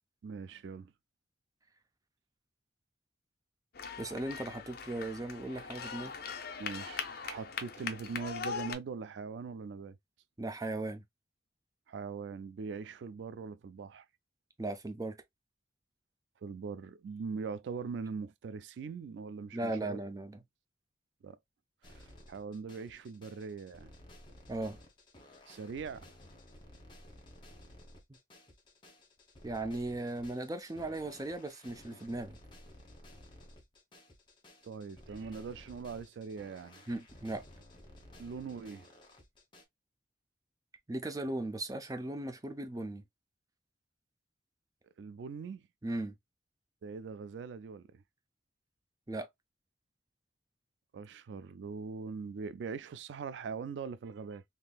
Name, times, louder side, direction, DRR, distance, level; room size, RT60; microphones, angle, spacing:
voice 1, 0.2-0.9 6.6-10.0 11.9-14.1 16.4-20.0 21.2-21.4 21.8-23.9 25.5-26.2 34.6-36.9 38.2-38.9 45.0-45.7 46.8-48.0 50.9-54.4, right 5 dB, 90° right, 0.3 m, -41 dB
sound 1, 3.7-8.7, left 6 dB, 60° left, 0.6 m, -41 dB
voice 2, 4.0-6.1 10.4-11.0 14.6-15.2 19.5-20.4 24.5-24.8 29.4-32.4 36.9-37.4 40.9-43.0 45.8-46.1 49.1-49.3, right 2 dB, 20° right, 0.5 m, -37 dB
sound 2, 21.8-39.6, left 1 dB, 30° left, 1.0 m, -55 dB
3.6 x 2.7 x 2.2 m
head